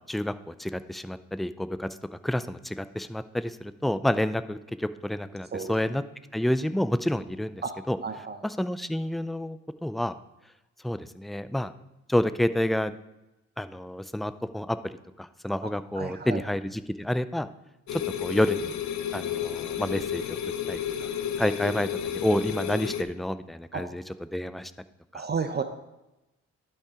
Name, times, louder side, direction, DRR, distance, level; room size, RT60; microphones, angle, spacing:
voice 1, 0.1-1.9 2.2-6.0 6.3-8.0 8.4-10.1 10.8-11.7 12.1-12.9 13.6-14.9 15.2-17.5 17.9-18.7 19.1-20.4 20.7-21.1 21.4-24.0 24.3-24.7 25.1-25.2, left 1 dB, ahead, 13 dB, 0.3 m, -29 dB
voice 2, 8.0-8.4 15.6-15.7 16.0-16.4 23.7-23.8 25.1-25.6, right 5 dB, 35° right, 8 dB, 0.7 m, -32 dB
sound 1, 17.9-23.0, left 9 dB, 70° left, 0.7 m, -31 dB
11.5 x 5.6 x 3.6 m, 0.96 s
cardioid pair, 90°, 30 cm